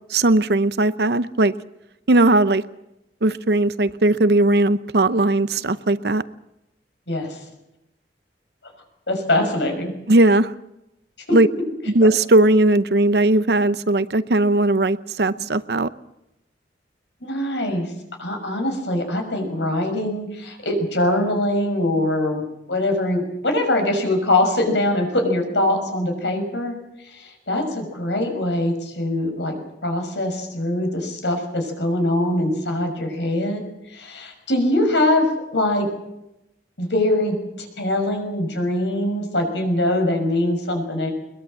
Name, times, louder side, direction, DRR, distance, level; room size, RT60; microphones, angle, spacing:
voice 1, 0.1-1.5 2.1-2.6 3.2-6.2 10.1-10.5 11.3-11.5 11.9-15.9, right 2 dB, 65° right, 15 dB, 0.8 m, -18 dB
voice 2, 7.1-7.4 9.1-9.9 11.3-11.4 17.2-17.9 18.2-26.7 27.1-29.6 29.8-33.6 33.9-35.3 35.5-35.9 36.8-37.4 37.8-41.1, left 1 dB, 85° left, 4 dB, 6.0 m, -22 dB
22.0 x 21.5 x 7.5 m, 0.89 s
head